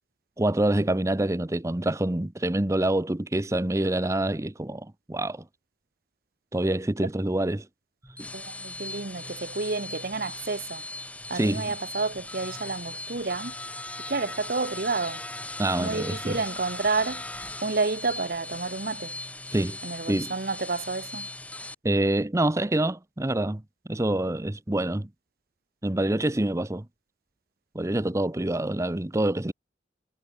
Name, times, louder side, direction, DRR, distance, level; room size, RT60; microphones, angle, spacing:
voice 1, 0.4-5.4 6.5-7.7 8.2-8.3 11.3-11.7 15.6-16.4 19.5-19.8 20.1-20.3 21.8-23.6 23.9-25.1 25.8-26.9 27.7-29.5, right 1 dB, 15° right, 0.7 m, -26 dB
sound 1, 8.0-21.7, left 2 dB, 10° left, 3.0 m, -38 dB
voice 2, 8.3-10.8 11.3-13.5 14.1-15.2 15.7-17.2 17.6-19.1 19.8-21.3, right 3 dB, 55° right, 1.1 m, -30 dB
head